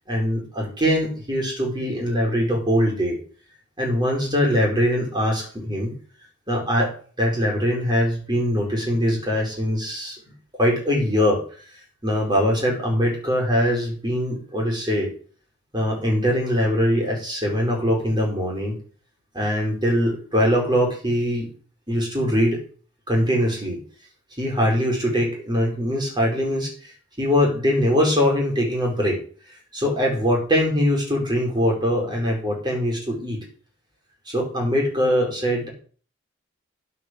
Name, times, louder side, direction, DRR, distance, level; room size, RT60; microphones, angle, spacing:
voice 1, 0.1-3.2 3.8-5.9 6.5-6.9 7.2-10.1 10.6-11.4 12.0-15.1 15.7-18.8 19.3-21.5 21.9-22.6 23.1-23.8 24.4-26.9 27.2-29.2 29.7-33.4 34.3-35.7, equal, 20° right, -1 dB, 5.0 m, -22 dB
13.0 x 6.6 x 6.4 m, 0.43 s
head